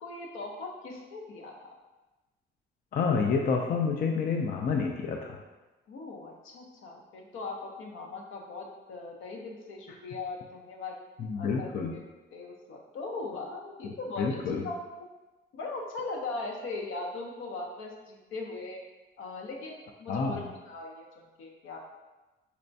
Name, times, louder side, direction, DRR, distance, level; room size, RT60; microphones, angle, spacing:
voice 1, 0.0-1.7 5.9-10.9 11.4-12.0 12.3-14.2 14.6-15.1 15.5-18.8 19.2-21.0 21.4-21.9, left 3 dB, 80° left, 0 dB, 0.7 m, -39 dB
voice 2, 2.9-5.4 11.2-12.0 13.8-14.6 20.1-20.5, left 5 dB, 45° left, 1 dB, 0.4 m, -29 dB
4.2 x 2.2 x 2.6 m, 1.1 s
cardioid pair, 90°, 20 cm